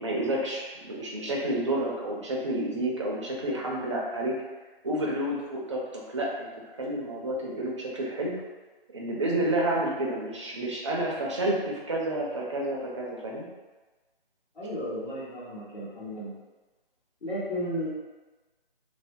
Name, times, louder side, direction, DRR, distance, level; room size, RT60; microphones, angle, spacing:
voice 1, 0.0-4.3 4.8-8.3 8.9-13.4, right 1 dB, 30° right, -3 dB, 0.5 m, -30 dB
voice 2, 14.5-16.3 17.2-17.9, equal, 50° left, -14 dB, 1.3 m, -34 dB
2.6 x 2.1 x 3.4 m, 1.2 s
figure-of-eight pair, 150°, 30 cm